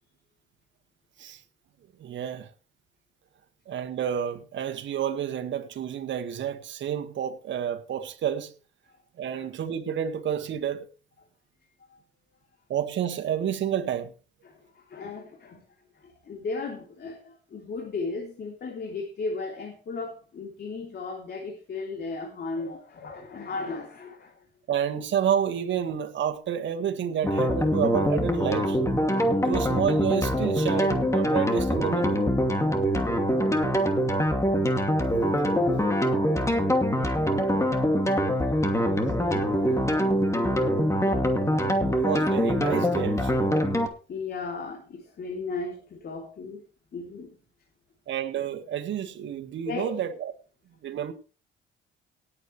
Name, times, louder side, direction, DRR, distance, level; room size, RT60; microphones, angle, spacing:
voice 1, 2.0-2.5 3.7-8.5 9.2-10.9 12.7-14.1 24.7-28.8 29.4-32.3 41.9-43.5 48.1-50.3 50.8-51.1, right 9 dB, 70° right, 1.8 m, -30 dB
voice 2, 14.4-15.6 15.9-24.4 38.2-38.6 40.9-42.1 44.1-46.6 46.9-47.4 49.6-49.9, left 3 dB, 55° left, 3.4 m, -36 dB
sound 1, 27.2-43.9, equal, 15° left, 2.6 m, -24 dB
18.5 x 8.7 x 3.3 m
cardioid pair, 90°, 20 cm